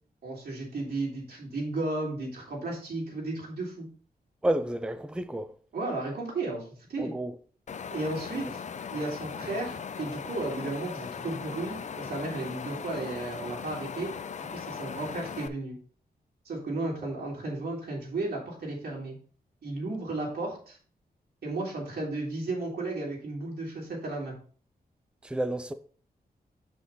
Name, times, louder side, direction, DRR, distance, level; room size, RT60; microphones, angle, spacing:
voice 1, 0.2-3.9 5.7-7.1 7.9-8.6 8.9-14.1 14.5-15.8 16.5-19.2 19.6-20.8 21.4-24.4, right 2 dB, 85° right, 3.4 m, -34 dB
voice 2, 4.4-5.5 7.0-7.3 8.4-8.5 25.2-25.7, right 1 dB, 5° right, 0.5 m, -30 dB
Wind, 7.7-15.5, left 6 dB, 45° left, 0.5 m, -39 dB
7.3 x 6.1 x 3.9 m
wide cardioid pair, 130°, 16 cm